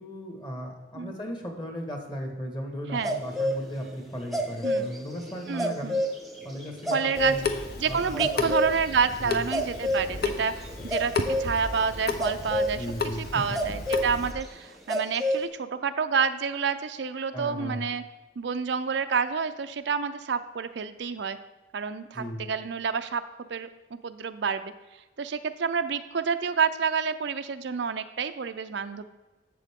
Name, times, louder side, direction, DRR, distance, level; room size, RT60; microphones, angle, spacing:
voice 1, 0.0-5.9 6.4-7.4 7.8-8.6 9.2-9.5 12.7-13.6 17.3-17.9 22.1-22.5, equal, 25° left, 2 dB, 1.6 m, -36 dB
sound 1, 3.0-3.6 4.0-12.8 13.5-14.1 14.4-14.5 14.9-15.4, equal, ahead, 1.1 m, -29 dB
voice 2, 5.5-6.0 6.9-7.4 7.8-12.9 13.2-18.0 18.4-21.4 21.7-23.2 23.5-24.7 25.2-29.0, right 6 dB, 65° right, 9 dB, 0.5 m, -29 dB
Water tap faucet / Sink (filling or washing) / Drip, 7.1-14.3, left 4 dB, 55° left, 0.8 m, -34 dB
11.0 x 7.6 x 3.6 m, 1.1 s
head